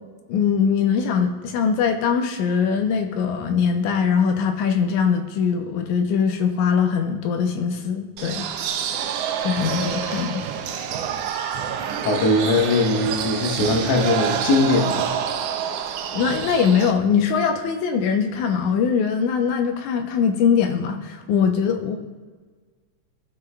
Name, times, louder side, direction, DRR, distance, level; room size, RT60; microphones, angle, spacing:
voice 1, 0.3-8.5 9.4-10.4 10.7-10.8 16.1-22.0, left 6 dB, 85° left, 5 dB, 2.1 m, -22 dB
sound 1, 8.2-16.9, right 8 dB, 90° right, 1.4 m, -27 dB
voice 2, 12.0-15.1, left 2 dB, 65° left, 3 dB, 1.9 m, -20 dB
14.0 x 6.2 x 2.2 m, 1.4 s
omnidirectional pair, 3.4 m